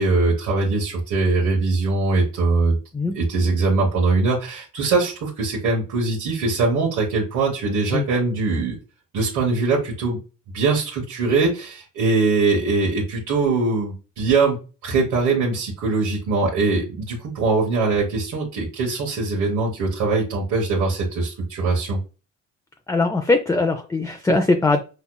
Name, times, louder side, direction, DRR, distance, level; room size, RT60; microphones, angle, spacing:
voice 1, 0.0-2.8 3.1-8.8 9.1-10.2 10.5-14.6 14.8-22.0, right 3 dB, 85° right, -4 dB, 1.2 m, -22 dB
voice 2, 22.9-24.8, left 2 dB, 10° left, 5 dB, 0.4 m, -20 dB
5.5 x 2.3 x 2.2 m, 0.32 s
cardioid pair, 90°, 30 cm